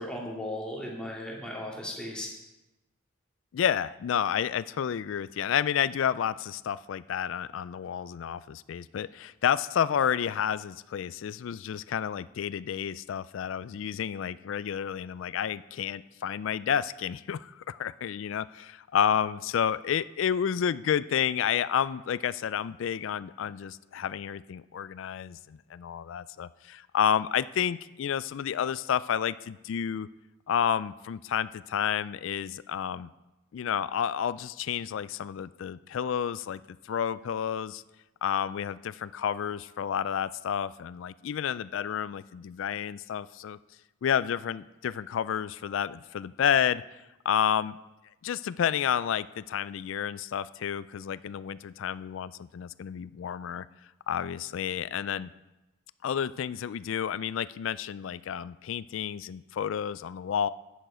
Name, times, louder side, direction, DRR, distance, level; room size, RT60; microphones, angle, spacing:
voice 1, 0.0-2.3, left 1 dB, 5° left, -3 dB, 2.2 m, -36 dB
voice 2, 3.5-30.1 30.5-33.1 33.5-37.8 38.2-43.6 44.0-46.8 47.3-47.8 48.2-53.7 54.1-55.3 56.0-60.5, left 8 dB, 70° left, 17 dB, 0.3 m, -30 dB
10.5 x 9.2 x 5.0 m, 1.0 s
head